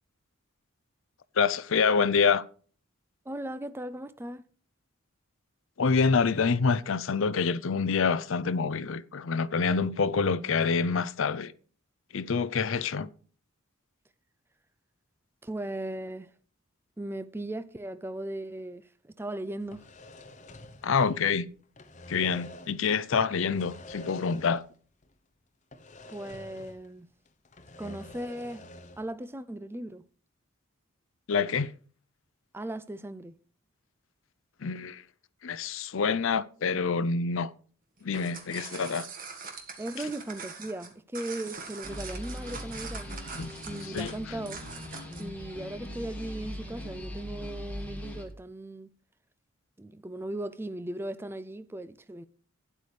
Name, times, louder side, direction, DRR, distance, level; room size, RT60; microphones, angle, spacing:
voice 1, 1.4-2.4 5.8-11.5 12.1-13.1 20.8-21.5 22.1-24.6 31.3-31.7 34.6-35.0 35.4-37.5 38.0-39.1 43.3-43.5 43.8-44.1, left 5 dB, 65° left, 0.5 m, -26 dB
voice 2, 3.3-4.4 15.4-16.3 17.0-19.9 26.1-27.1 27.8-28.7 29.0-30.0 32.5-33.4 39.8-43.1 43.7-44.6 45.2-48.9 49.8-52.2, right 1 dB, 10° right, 0.4 m, -37 dB
sound 1, 19.6-21.4 21.6-22.9 23.4-24.8 25.0-25.1 25.7-27.0 27.3-29.1, left 2 dB, 35° left, 0.8 m, -48 dB
sound 2, 38.0-45.3, right 5 dB, 40° right, 1.7 m, -43 dB
sound 3, 41.8-48.2, left 1 dB, 5° left, 1.7 m, -40 dB
12.0 x 9.9 x 3.3 m
head